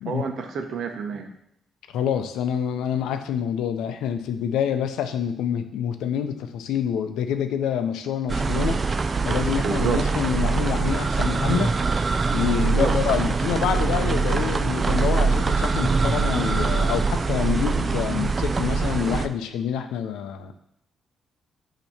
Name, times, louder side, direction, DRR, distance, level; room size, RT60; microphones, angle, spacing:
voice 1, 0.0-1.3 9.6-10.0 12.6-12.9, right 5 dB, 65° right, 5 dB, 0.9 m, -29 dB
voice 2, 1.9-8.8 9.2-11.7 12.3-20.5, left 8 dB, 85° left, 8 dB, 0.5 m, -27 dB
sound 1, 8.3-19.3, right 4 dB, 40° right, 0.4 m, -23 dB
7.0 x 2.9 x 5.8 m, 0.75 s
cardioid pair, 70°, 0 cm